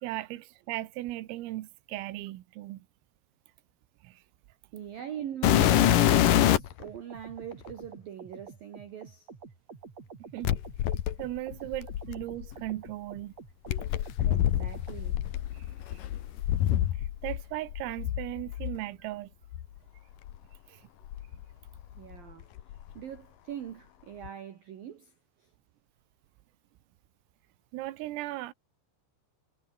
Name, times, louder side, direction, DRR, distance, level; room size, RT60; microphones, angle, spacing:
voice 1, 0.0-2.9 4.0-4.2 10.3-10.5 11.2-13.3 15.5-16.0 17.0-19.3 20.7-20.8 27.7-28.5, right 16 dB, 85° right, 4.0 m, -37 dB
voice 2, 4.7-9.3 14.2-15.2 21.9-22.5 22.9-25.5, right 9 dB, 55° right, 3.1 m, -42 dB
sound 1, 5.4-6.8 7.7-7.8 10.4-12.5 13.7-17.4 17.7-18.8 19.5-19.7 20.3-20.4 21.0-22.1 22.4-22.9 24.2-24.3, left 12 dB, 65° left, 2.2 m, -26 dB
sound 2, 6.6-15.0, right 5 dB, 35° right, 4.6 m, -48 dB
omnidirectional pair, 5.8 m